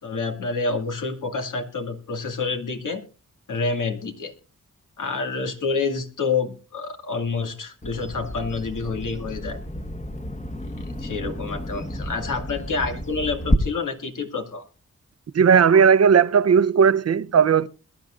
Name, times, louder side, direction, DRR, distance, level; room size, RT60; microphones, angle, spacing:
voice 1, 0.0-3.0 3.5-4.3 5.0-9.6 11.0-14.6, left 4 dB, 70° left, 2.3 m, -28 dB
Bird vocalization bird call bird song, 7.8-13.6, equal, 20° left, 1.4 m, -30 dB
voice 2, 15.3-17.7, right 6 dB, 50° right, 0.7 m, -16 dB
22.0 x 12.0 x 2.5 m
cardioid pair, 60°, 32 cm